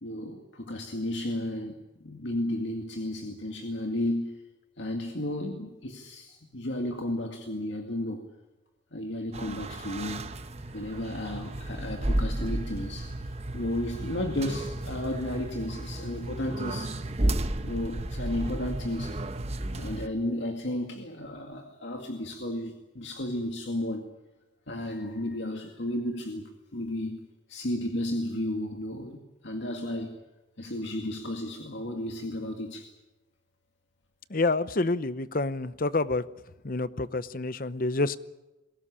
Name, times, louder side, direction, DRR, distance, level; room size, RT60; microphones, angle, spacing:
voice 1, 0.0-1.7 2.0-4.3 4.8-8.3 8.9-10.3 10.7-13.1 13.5-17.0 17.6-19.2 19.7-24.1 24.7-29.2 29.4-30.2 30.6-32.9, left 1 dB, 70° left, 2.2 m, -33 dB
sound 1, 9.3-20.1, right 1 dB, 35° right, 1.0 m, -33 dB
voice 2, 34.3-36.2 36.6-38.2, left 3 dB, 45° left, 0.8 m, -28 dB
22.0 x 18.0 x 10.0 m
head